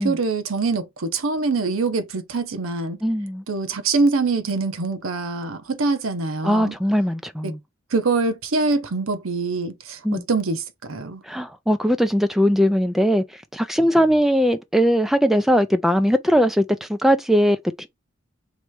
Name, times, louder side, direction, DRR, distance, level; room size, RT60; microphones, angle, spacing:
voice 1, 0.0-3.0 3.5-6.8 7.4-7.5 7.9-11.2 14.0-14.1, right 3 dB, 85° right, 0.7 m, -24 dB
voice 2, 3.0-3.4 6.4-7.6 10.0-10.2 11.3-13.2 13.5-17.9, equal, ahead, 0.3 m, -20 dB
3.2 x 3.1 x 4.7 m
head